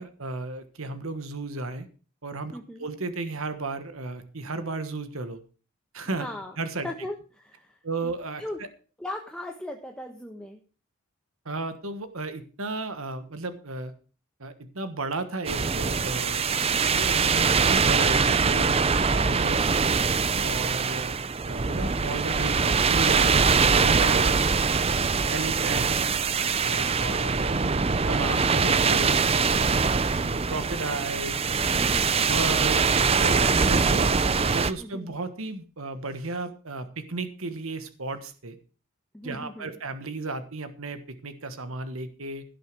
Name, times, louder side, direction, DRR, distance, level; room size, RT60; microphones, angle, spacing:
voice 1, 0.0-1.9 2.2-5.4 5.9-6.3 6.6-6.9 7.8-8.7 11.4-13.9 14.4-18.8 19.1-20.0 20.4-21.2 21.4-24.5 24.9-25.9 26.6-27.6 27.9-31.6 32.1-34.1 34.5-38.6 39.2-42.4, right 3 dB, 70° right, 10 dB, 1.3 m, -34 dB
voice 2, 2.5-2.8 6.2-6.6 6.8-8.1 8.4-8.6 9.0-10.6 16.5-16.9 25.7-25.9 31.8-32.1 34.8-35.1 39.1-39.7, left 1 dB, 5° left, 2 dB, 1.1 m, -38 dB
sound 1, 15.5-34.7, right 5 dB, 25° right, 0.5 m, -23 dB
16.5 x 6.6 x 6.1 m, 0.38 s
head